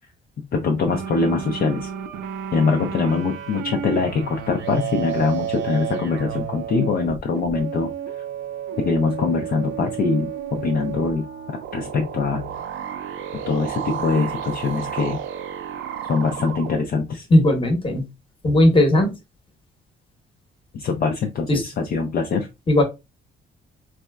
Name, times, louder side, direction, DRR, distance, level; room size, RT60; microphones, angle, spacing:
voice 1, 0.5-1.9 2.5-7.9 8.8-12.5 13.4-15.2 16.1-17.3 20.7-22.5, left 4 dB, 50° left, 3 dB, 0.5 m, -23 dB
sound 1, 0.9-16.8, right 9 dB, 80° right, 0.5 m, -32 dB
voice 2, 17.3-18.0 18.4-19.1 21.5-21.6 22.7-22.8, left 1 dB, 25° left, 4 dB, 1.0 m, -16 dB
4.1 x 2.2 x 2.2 m, 0.24 s
cardioid pair, 90°, 20 cm